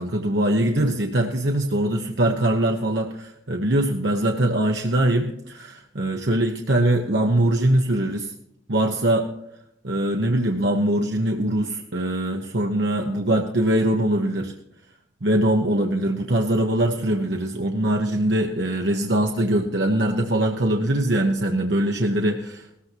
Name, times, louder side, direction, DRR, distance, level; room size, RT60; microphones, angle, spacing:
voice 1, 0.0-8.3 8.7-9.3 9.8-14.5 15.2-22.7, right 1 dB, 65° right, 2 dB, 1.1 m, -22 dB
17.5 x 14.5 x 3.0 m, 0.76 s
head